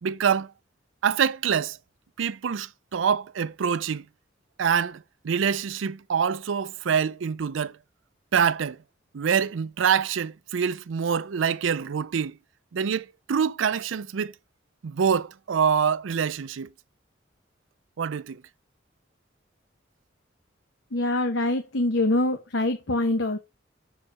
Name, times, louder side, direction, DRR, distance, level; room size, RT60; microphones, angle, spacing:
voice 1, 0.0-0.5 1.0-1.8 2.2-4.1 4.6-7.8 8.3-8.8 9.1-12.4 12.7-14.3 14.8-16.7 18.0-18.4, right 7 dB, 85° right, 0.4 m, -25 dB
voice 2, 20.9-23.4, left 2 dB, 70° left, 0.9 m, -24 dB
6.9 x 6.5 x 4.7 m
head